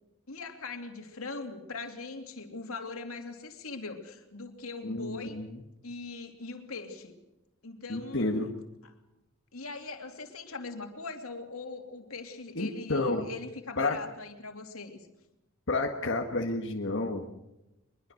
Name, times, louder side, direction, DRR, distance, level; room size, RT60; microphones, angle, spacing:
voice 1, 0.3-5.4 5.8-7.2 7.6-8.5 9.5-15.1, left 3 dB, 85° left, 5 dB, 3.0 m, -41 dB
voice 2, 4.8-5.6 7.9-8.5 12.6-13.3 13.8-14.0 15.7-17.3, left 2 dB, 60° left, 2 dB, 1.7 m, -30 dB
24.0 x 22.0 x 6.5 m, 0.96 s
head